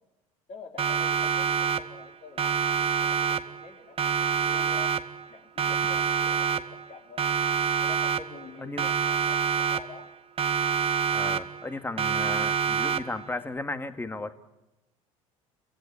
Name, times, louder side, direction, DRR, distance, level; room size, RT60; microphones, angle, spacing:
voice 1, 0.5-4.9 5.3-7.3 7.8-10.1, left 5 dB, 40° left, 3 dB, 4.4 m, -47 dB
Siren, 0.8-2.1 2.4-3.7 4.0-5.3 5.6-6.9 7.2-8.5 8.8-10.1 10.4-11.7 12.0-13.3, right 7 dB, 35° right, 1.3 m, -27 dB
voice 2, 11.1-14.3, left 2 dB, 10° left, 11 dB, 1.9 m, -35 dB
28.5 x 16.0 x 9.8 m, 0.95 s
hypercardioid pair, 70°, 17 cm